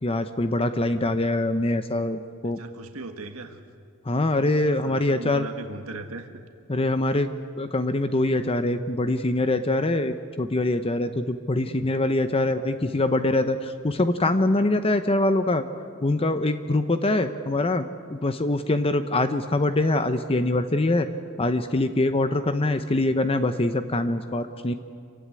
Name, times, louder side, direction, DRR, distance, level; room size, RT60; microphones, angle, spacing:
voice 1, 0.0-2.6 4.1-5.4 6.7-7.3 7.6-15.6 16.0-21.1 21.4-24.7, left 2 dB, 25° left, 9 dB, 0.7 m, -24 dB
voice 2, 0.7-1.0 2.4-3.6 4.7-6.3, right 2 dB, 90° right, 6 dB, 1.6 m, -39 dB
27.0 x 16.0 x 9.7 m, 2.2 s
head